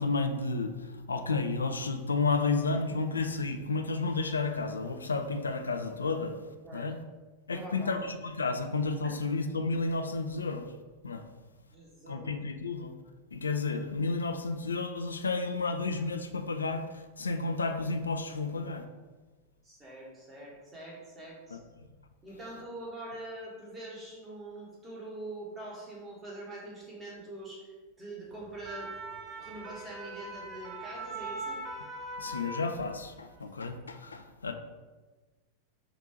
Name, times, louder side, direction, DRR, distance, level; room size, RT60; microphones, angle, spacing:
voice 1, 0.0-6.4 6.7-7.0 7.5-10.7 11.0-11.2 12.1-12.9 13.3-18.8 21.5-21.6 32.2-34.5, left 3 dB, 75° left, 7 dB, 0.3 m, -31 dB
voice 2, 7.5-8.1 9.0-9.2 11.7-12.3 19.6-21.6 22.2-27.7 28.0-28.9 29.4-31.6, right 1 dB, 20° right, -4 dB, 1.5 m, -44 dB
sound 1, 28.4-33.2 33.5-33.8, right 2 dB, 35° right, 0.7 m, -41 dB
3.8 x 2.7 x 4.8 m, 1.3 s
figure-of-eight pair, 90°, 0 cm